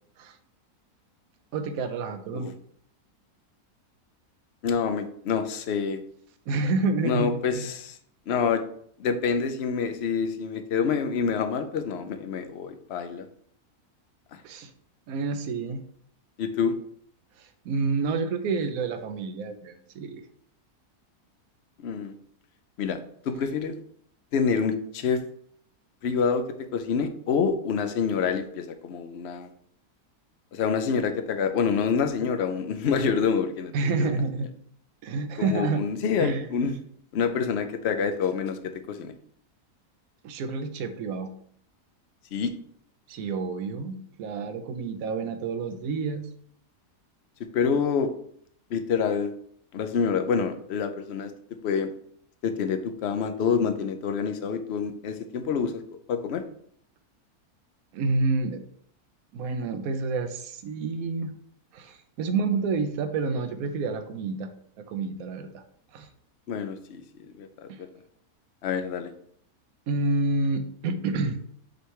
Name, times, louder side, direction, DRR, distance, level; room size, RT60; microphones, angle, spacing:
voice 1, 1.5-2.5 6.5-7.6 14.4-14.7 15.1-15.8 17.4-20.2 33.7-34.5 35.0-35.8 36.2-36.4 40.2-41.3 43.1-46.3 57.9-58.6 59.3-61.3 61.7-64.5 64.8-65.6 65.9-66.1 67.7-67.8 69.9-71.4, right 3 dB, 65° right, 7 dB, 1.1 m, -29 dB
voice 2, 4.6-6.0 7.0-8.0 8.3-8.6 9.0-13.3 16.4-16.8 21.8-22.2 22.8-23.0 23.2-23.8 24.3-25.2 26.0-26.4 26.7-29.5 30.5-34.2 35.4-36.8 37.1-39.1 42.3-42.5 47.5-48.1 48.7-49.3 49.7-51.3 51.6-51.9 52.4-55.8 56.1-56.4 66.5-67.0 67.4-67.5 68.6-69.1, left 6 dB, 55° left, 8 dB, 0.8 m, -27 dB
6.7 x 3.3 x 4.7 m, 0.63 s
omnidirectional pair, 1.7 m